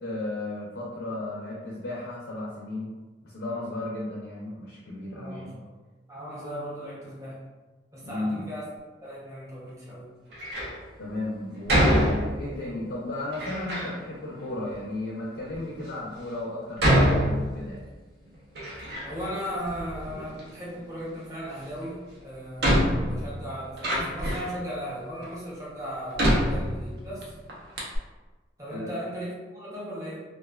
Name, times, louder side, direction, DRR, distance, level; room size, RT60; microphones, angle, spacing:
voice 1, 0.0-2.9 3.2-5.6 8.0-8.4 11.0-17.8 28.7-28.9, left 2 dB, 85° left, -6 dB, 0.5 m, -34 dB
voice 2, 5.1-5.7 6.1-7.4 7.9-8.7 9.0-10.1 18.7-27.3 28.6-30.2, equal, 15° right, -7 dB, 0.6 m, -37 dB
Door, 10.3-10.8 11.7-12.7 13.3-14.0 14.7-14.8 15.5-15.6 16.8-17.9 18.3-19.3 19.6-20.5 21.8-21.9 22.6-24.6 25.2-25.3 26.2-27.2 27.5-27.6 27.8-28.0, equal, 65° right, 0.6 m, -25 dB
2.4 x 2.3 x 2.2 m, 1.2 s
head